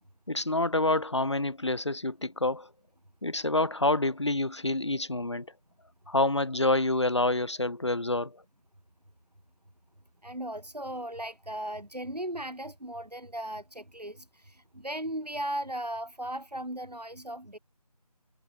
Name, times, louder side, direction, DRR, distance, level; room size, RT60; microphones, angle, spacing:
voice 1, 0.3-2.7 3.2-5.5 6.1-8.3, left 2 dB, 45° left, 0.7 m, -27 dB
voice 2, 10.2-17.6, right 1 dB, 85° right, 3.9 m, -37 dB
figure-of-eight pair, 170°, 20 cm